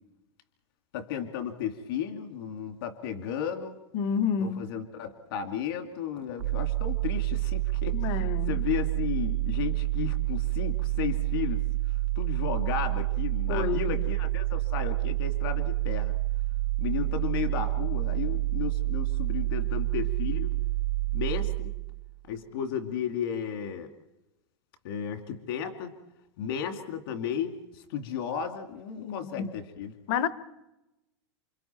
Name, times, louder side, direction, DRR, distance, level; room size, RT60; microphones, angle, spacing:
voice 1, 0.9-3.8 4.4-11.6 12.2-16.2 16.8-20.6 21.1-21.7 22.2-23.9 24.8-26.0 26.4-29.9, left 8 dB, 55° left, 2.5 m, -34 dB
voice 2, 3.9-4.7 7.9-8.5 13.5-13.8 29.0-29.5 30.1-30.3, left 7 dB, 35° left, 1.0 m, -29 dB
sound 1, 6.4-22.2, right 19 dB, 80° right, 0.8 m, -28 dB
28.5 x 26.0 x 4.5 m
supercardioid pair, 170°, 15 cm